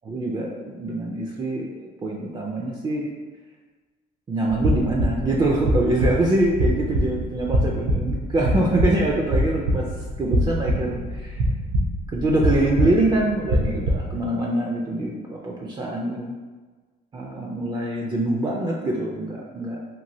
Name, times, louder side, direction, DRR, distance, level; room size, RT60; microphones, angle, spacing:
voice 1, 0.0-3.1 4.3-9.9 10.2-11.4 12.1-16.4 17.1-19.8, right 1 dB, 25° right, -2 dB, 0.4 m, -24 dB
sound 1, 4.5-14.3, equal, 80° right, 0.6 m, -24 dB
3.0 x 2.5 x 2.7 m, 1.3 s
cardioid pair, 110°, 17 cm